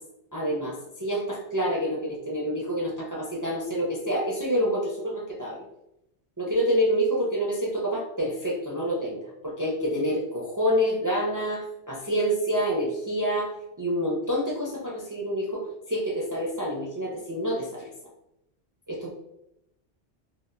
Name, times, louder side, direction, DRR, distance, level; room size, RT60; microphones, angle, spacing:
voice 1, 0.3-5.6 6.4-15.6 15.9-17.9 18.9-19.1, equal, 35° right, -4 dB, 0.3 m, -27 dB
3.3 x 2.4 x 2.5 m, 0.84 s
omnidirectional pair, 1.2 m